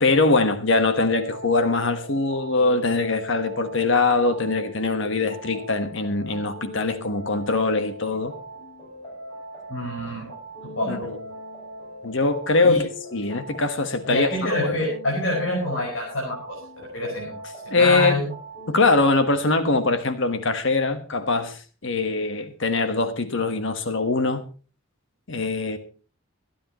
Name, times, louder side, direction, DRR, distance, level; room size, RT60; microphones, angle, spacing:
voice 1, 0.0-8.3 10.9-11.2 12.0-14.3 14.6-14.8 17.7-18.1 18.7-24.4 25.3-25.8, left 3 dB, 70° left, 1.4 m, -22 dB
sound 1, 0.9-18.8, equal, 25° left, 7.5 m, -40 dB
voice 2, 9.7-10.3 10.8-11.1 12.6-12.8 14.1-17.3 17.6-18.3, left 1 dB, 85° left, 5.7 m, -26 dB
24.5 x 10.0 x 3.1 m
head